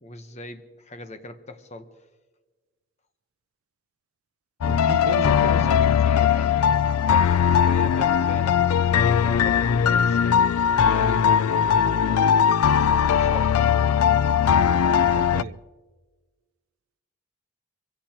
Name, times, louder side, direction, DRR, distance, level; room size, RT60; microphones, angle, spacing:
voice 1, 0.0-2.0 4.6-12.4 13.1-13.8, left 1 dB, 30° left, 1.0 m, -39 dB
sound 1, 4.6-15.4, left 8 dB, 90° left, 0.4 m, -20 dB
voice 2, 4.7-5.6 14.9-15.6, right 5 dB, 80° right, 0.4 m, -35 dB
24.5 x 16.5 x 2.9 m
head